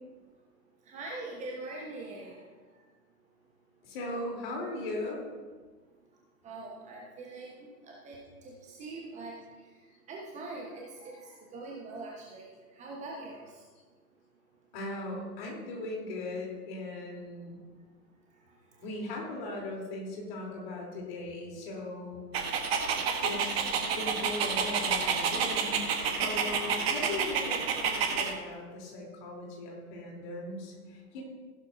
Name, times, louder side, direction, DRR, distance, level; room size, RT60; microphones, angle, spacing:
voice 1, 0.9-2.4 6.4-7.7 8.0-8.2 8.8-9.3 10.1-10.7 11.0-11.1 11.5-12.5 12.8-13.4, right 2 dB, 15° right, -2 dB, 1.3 m, -42 dB
voice 2, 3.8-5.2 14.7-17.6 18.8-22.2 23.2-23.6 23.9-25.9 26.2-31.2, left 2 dB, 35° left, -1 dB, 3.7 m, -38 dB
Dog, 22.3-28.3, right 6 dB, 40° right, 1.4 m, -29 dB
15.0 x 12.0 x 2.8 m, 1.4 s
figure-of-eight pair, 120°, 49 cm